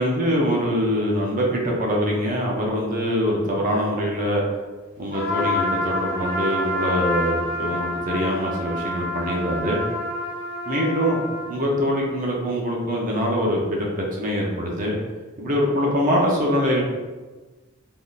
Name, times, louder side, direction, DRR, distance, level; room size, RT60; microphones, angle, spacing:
voice 1, 0.0-4.4 5.0-9.8 10.7-11.2 11.5-15.0 15.4-16.8, equal, 40° right, -2 dB, 0.5 m, -23 dB
Trumpet, 5.1-11.6, left 1 dB, 45° left, 1.2 m, -27 dB
3.6 x 2.5 x 2.3 m, 1.3 s
head